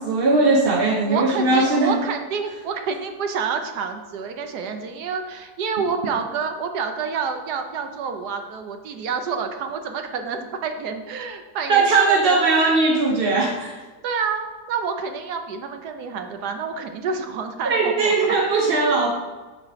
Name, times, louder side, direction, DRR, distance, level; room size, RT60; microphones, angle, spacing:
voice 1, 0.0-2.0 11.7-13.8 17.6-19.1, right 3 dB, 50° right, -1 dB, 0.7 m, -19 dB
voice 2, 1.0-12.4 14.0-18.3, right 5 dB, 70° right, 6 dB, 1.2 m, -28 dB
7.1 x 4.2 x 5.6 m, 1.3 s
omnidirectional pair, 1.9 m